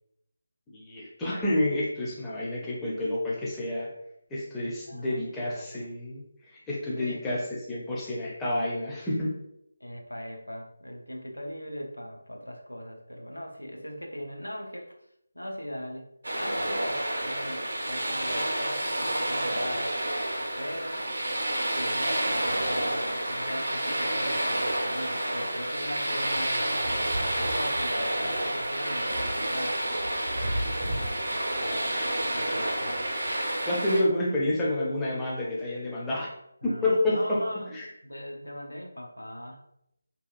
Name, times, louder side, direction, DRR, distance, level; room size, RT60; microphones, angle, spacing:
voice 1, 0.7-3.9 4.3-6.2 6.7-9.4 30.9-31.0 33.7-36.3 36.6-37.9, left 1 dB, 10° left, -6 dB, 0.5 m, -29 dB
voice 2, 4.9-5.9 6.9-7.3 9.8-15.0 15.3-20.0 20.6-21.0 21.7-29.8 31.0-31.9 32.3-33.1 36.6-37.7 38.0-39.6, equal, 85° left, 1 dB, 0.5 m, -39 dB
sound 1, 16.2-34.0, right 1 dB, 65° right, 0.6 m, -29 dB
2.7 x 2.2 x 2.4 m, 0.78 s
figure-of-eight pair, 155°, 0 cm